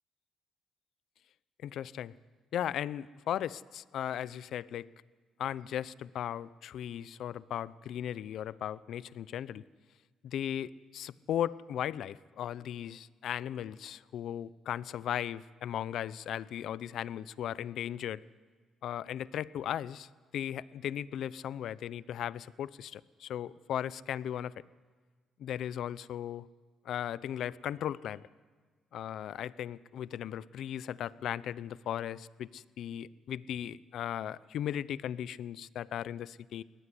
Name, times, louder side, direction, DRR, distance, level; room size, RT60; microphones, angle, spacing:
voice 1, 1.6-2.1 2.5-4.9 5.4-9.6 10.2-18.2 18.8-24.5 25.4-26.5 26.8-28.2 28.9-36.6, left 10 dB, 75° left, 19 dB, 0.6 m, -37 dB
21.5 x 18.5 x 9.9 m, 1.5 s
cardioid pair, 90°, 0 cm